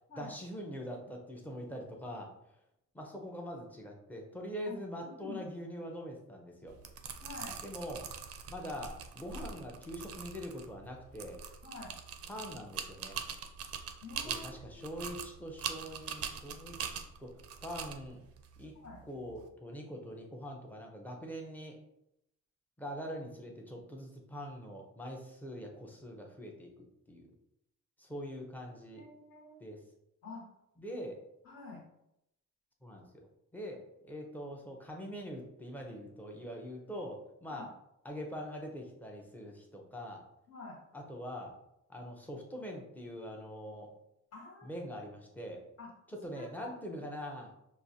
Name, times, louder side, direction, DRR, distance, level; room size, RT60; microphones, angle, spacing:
voice 1, 0.2-2.3 2.9-6.7 7.6-8.1 8.5-11.4 12.3-13.2 14.2-16.8 17.2-17.3 17.6-18.2 18.6-18.7 19.1-21.8 22.8-26.7 27.1-27.3 28.0-29.0 29.6-29.8 30.8-31.2 32.8-33.0 33.5-37.7 38.0-40.2 40.9-41.5 41.9-43.9 44.6-45.6 46.1-47.5, equal, 5° left, 0 dB, 0.6 m, -43 dB
voice 2, 4.6-5.4 7.2-7.6 11.6-11.9 14.0-15.0 18.7-19.0 28.9-29.5 30.2-30.5 31.4-31.8 37.5-37.7 40.5-40.8 44.3-44.8 45.8-45.9 46.3-46.7, left 3 dB, 55° left, -2 dB, 1.3 m, -48 dB
sound 1, 6.7-19.4, right 7 dB, 55° right, 0.4 m, -43 dB
5.9 x 2.4 x 2.6 m, 0.82 s
cardioid pair, 155°, 30 cm